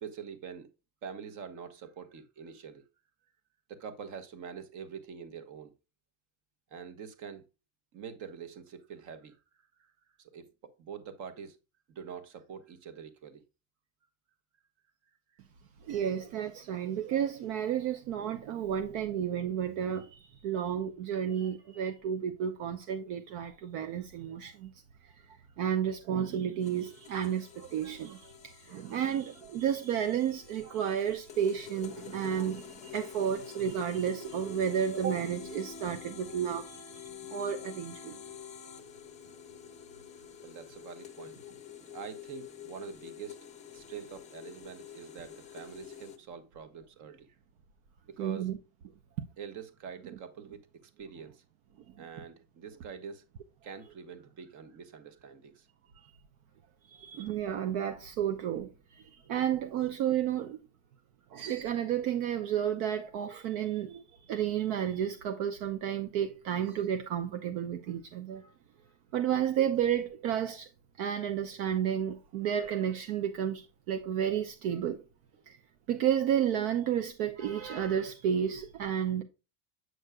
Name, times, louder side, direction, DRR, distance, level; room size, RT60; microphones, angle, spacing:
voice 1, 0.0-0.7 1.0-2.8 3.7-5.7 6.7-7.4 7.9-9.4 9.8-9.9 10.2-11.6 11.9-13.4 15.3-15.4 40.4-41.4 41.8-43.5 43.7-47.4 48.0-48.5 49.4-51.4 52.0-53.2 53.6-55.7 59.2-59.3, right 7 dB, 40° right, 1.2 m, -45 dB
voice 2, 15.8-24.7 25.0-36.8 37.3-38.2 48.2-48.6 56.9-60.6 61.3-68.5 69.1-70.7 71.0-75.0 75.5-75.6 75.9-79.2, right 9 dB, 60° right, 0.8 m, -32 dB
sound 1, 26.6-46.2, left 8 dB, 15° left, 0.7 m, -48 dB
7.9 x 6.3 x 2.3 m
supercardioid pair, 145°, 45 cm